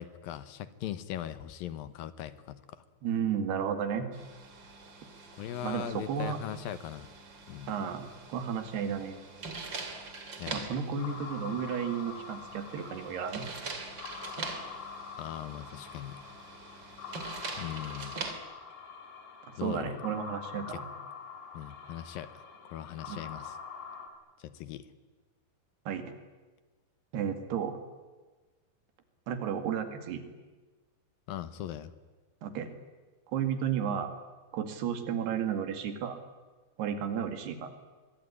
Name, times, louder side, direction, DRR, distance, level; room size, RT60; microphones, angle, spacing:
voice 1, 0.0-2.8 5.4-7.1 7.5-7.7 10.4-10.7 15.2-16.2 17.6-18.2 19.6-20.0 20.6-20.8 21.5-22.3 22.6-23.6 24.4-24.9 31.3-31.9, left 11 dB, 70° left, 14 dB, 2.6 m, -40 dB
voice 2, 3.0-4.1 5.6-6.4 7.7-9.2 10.5-13.5 19.6-20.9 23.1-23.2 25.9-26.2 27.1-27.8 29.3-30.2 32.4-32.7 33.3-34.1 34.5-36.2 36.8-37.7, right 7 dB, 85° right, 8 dB, 4.2 m, -33 dB
sound 1, 4.1-18.3, right 3 dB, 30° right, 2.8 m, -44 dB
sound 2, 11.0-24.1, left 6 dB, 55° left, 4.6 m, -45 dB
25.0 x 22.5 x 9.9 m, 1.3 s
omnidirectional pair, 4.6 m